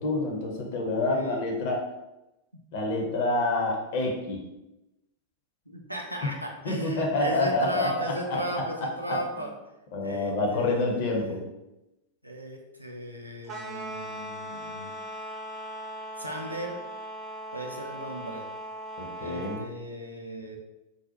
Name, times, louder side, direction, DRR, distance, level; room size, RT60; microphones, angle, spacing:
voice 1, 0.0-1.9 2.7-4.4 6.6-9.2 9.9-11.5 19.0-19.6, left 2 dB, 50° left, 1 dB, 0.6 m, -28 dB
voice 2, 0.8-1.4 5.7-9.5 10.0-11.3 12.2-14.9 16.2-16.8 17.5-18.5 19.2-20.6, right 1 dB, 90° right, 1 dB, 0.4 m, -37 dB
sound 1, 13.4-19.7, right 1 dB, 20° right, 0.5 m, -39 dB
2.6 x 2.0 x 2.7 m, 0.95 s
figure-of-eight pair, 90°, 0 cm